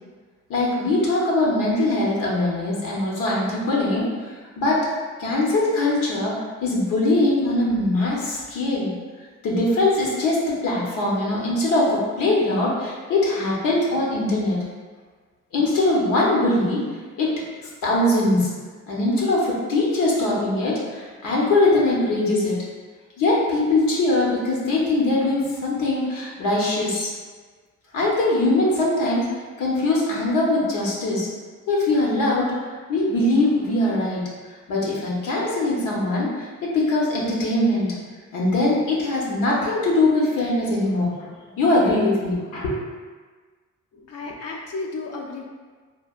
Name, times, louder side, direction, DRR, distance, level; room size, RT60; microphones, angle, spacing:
voice 1, 0.5-4.1 4.6-4.9 5.2-6.4 6.6-8.9 9.4-14.6 15.5-16.8 17.2-17.3 17.8-18.5 18.9-22.6 23.2-27.1 27.9-29.2 29.6-31.3 31.7-32.5 32.9-34.2 34.7-37.9 38.3-41.3 41.6-42.8, left 2 dB, 85° left, -4 dB, 0.8 m, -21 dB
voice 2, 43.9-45.4, left 3 dB, 60° left, 0 dB, 0.5 m, -33 dB
3.2 x 2.2 x 2.4 m, 1.4 s
cardioid pair, 90°, 30 cm